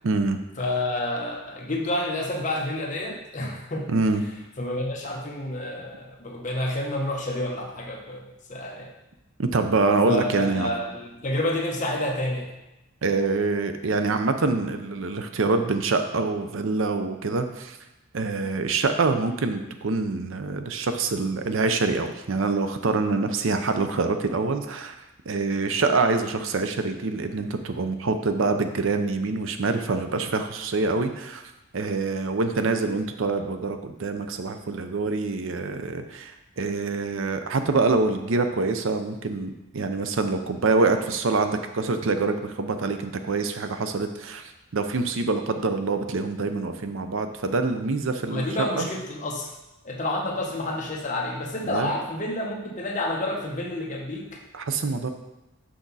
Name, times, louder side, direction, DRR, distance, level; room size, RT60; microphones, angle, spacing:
voice 1, 0.0-0.4 3.9-4.2 9.4-10.7 13.0-17.8 18.1-24.9 25.3-31.4 31.7-36.3 36.6-48.9 51.6-51.9 54.5-55.1, right 3 dB, 65° right, 8 dB, 0.5 m, -25 dB
voice 2, 0.6-3.9 4.6-8.9 10.0-12.5 48.3-49.5 49.8-54.4, left 1 dB, 35° left, 0 dB, 1.0 m, -29 dB
6.2 x 5.9 x 4.0 m, 0.96 s
head